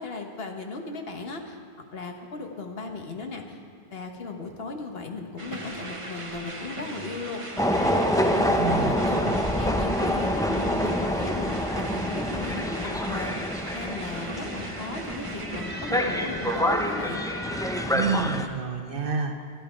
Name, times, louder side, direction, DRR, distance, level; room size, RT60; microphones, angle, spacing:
voice 1, 0.0-1.6 1.9-3.6 3.9-13.5 13.7-17.3, left 3 dB, 70° left, 3 dB, 1.4 m, -37 dB
sound 1, 5.4-17.9, right 2 dB, 30° right, 1.0 m, -38 dB
sound 2, 7.6-18.5, equal, 5° left, 0.4 m, -27 dB
voice 2, 8.6-9.3 17.9-19.3, right 5 dB, 60° right, 5 dB, 1.0 m, -29 dB
12.5 x 11.5 x 5.1 m, 2.3 s
omnidirectional pair, 1.1 m